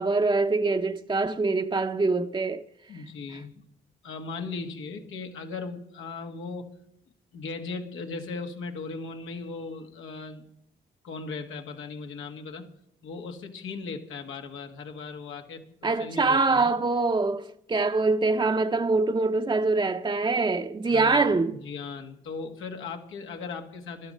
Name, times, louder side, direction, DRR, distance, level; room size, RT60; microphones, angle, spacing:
voice 1, 0.0-2.6 15.8-21.6, right 3 dB, 25° right, 0.7 m, -24 dB
voice 2, 2.9-3.6 4.0-6.7 7.3-10.5 11.0-12.7 13.0-16.7 20.9-24.1, left 4 dB, 90° left, 1.6 m, -38 dB
14.0 x 12.0 x 5.4 m
cardioid pair, 60°, 20 cm